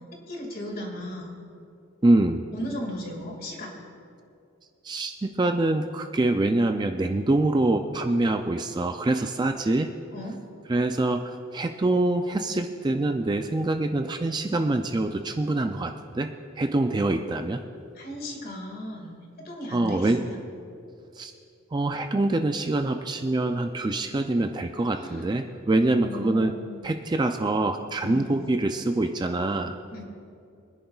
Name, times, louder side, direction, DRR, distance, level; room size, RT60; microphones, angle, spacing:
voice 1, 0.3-1.4 2.5-3.8 10.1-10.4 17.9-19.2 19.4-20.4 25.0-25.2 26.0-27.1 28.0-28.4 29.9-30.0, left 1 dB, 45° left, 1 dB, 2.1 m, -36 dB
voice 2, 2.0-2.5 4.8-9.9 10.7-17.6 19.7-20.2 21.2-21.3 21.7-26.5 26.8-29.8, right 2 dB, 20° right, 6 dB, 0.3 m, -25 dB
24.0 x 10.5 x 2.4 m, 2.5 s
head